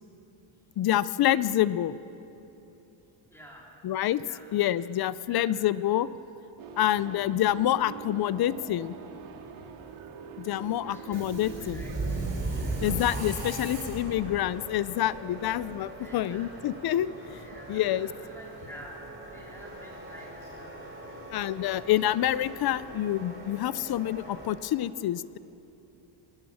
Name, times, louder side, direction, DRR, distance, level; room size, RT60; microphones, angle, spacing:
voice 1, 0.8-2.0 3.8-4.2 4.5-6.1 6.8-9.0 10.4-11.8 12.8-17.4 17.7-18.1 21.3-25.4, left 12 dB, 50° left, 17 dB, 0.6 m, -27 dB
voice 2, 3.3-3.8 4.2-4.5 5.2-5.5 10.7-11.9 16.0-16.6 17.3-20.8 23.6-23.8, equal, 5° left, -4 dB, 3.8 m, -50 dB
sound 1, 6.6-13.0, right 6 dB, 85° right, 2.3 m, -44 dB
Subway metro underground, 11.0-24.5, right 2 dB, 25° right, 3.8 m, -38 dB
26.0 x 20.5 x 6.4 m, 3.0 s
cardioid pair, 170°, 47 cm